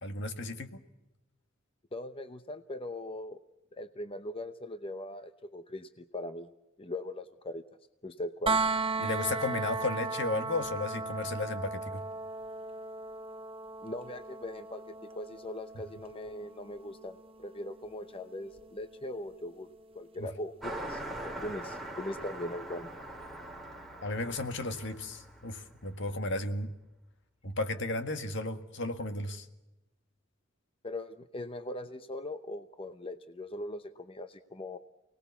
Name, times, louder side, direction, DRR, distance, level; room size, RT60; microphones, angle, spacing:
voice 1, 0.0-0.8 9.0-12.0 20.2-20.3 24.0-26.7 27.4-29.5, left 2 dB, 60° left, 8 dB, 1.8 m, -34 dB
voice 2, 1.9-3.4 3.7-6.5 6.8-7.6 8.0-8.6 13.8-19.7 19.9-22.9 30.8-34.8, left 1 dB, 25° left, 9 dB, 0.8 m, -40 dB
sound 1, 8.5-20.3 22.2-22.3, right 3 dB, 30° right, 0.8 m, -37 dB
Car passing by, 20.6-26.4, right 1 dB, ahead, 3.5 m, -43 dB
29.0 x 19.0 x 7.1 m, 0.99 s
head